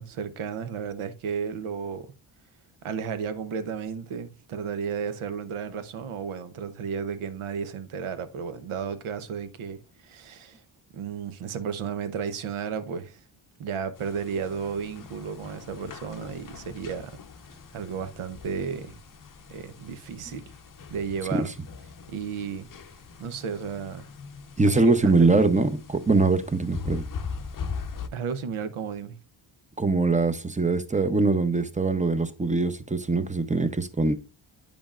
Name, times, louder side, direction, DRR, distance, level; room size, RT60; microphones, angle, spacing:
voice 1, 0.0-2.1 2.8-10.6 10.9-13.2 13.6-17.2 17.7-19.0 19.5-20.5 20.9-21.5 22.1-22.7 23.2-24.1 24.7-25.5 28.1-29.2, right 6 dB, 80° right, 0.8 m, -33 dB
sound 1, 14.0-28.1, left 5 dB, 40° left, 0.6 m, -41 dB
voice 2, 24.6-27.0 29.8-34.1, right 3 dB, 15° right, 0.6 m, -22 dB
8.8 x 5.2 x 2.4 m
cardioid pair, 65°, 49 cm